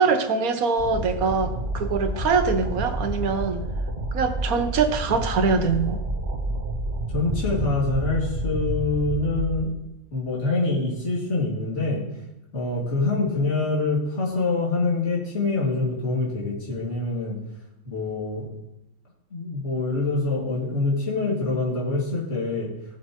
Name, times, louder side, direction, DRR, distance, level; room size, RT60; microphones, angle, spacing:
voice 1, 0.0-3.6 4.1-6.0, right 5 dB, 85° right, 8 dB, 1.4 m, -23 dB
sound 1, 0.8-9.6, right 1 dB, 45° right, 1.6 m, -29 dB
voice 2, 7.1-9.7 10.1-12.0 12.5-17.4 17.9-18.5 19.3-22.7, left 3 dB, 55° left, -6 dB, 2.9 m, -25 dB
17.0 x 7.3 x 3.1 m, 0.91 s
omnidirectional pair, 1.5 m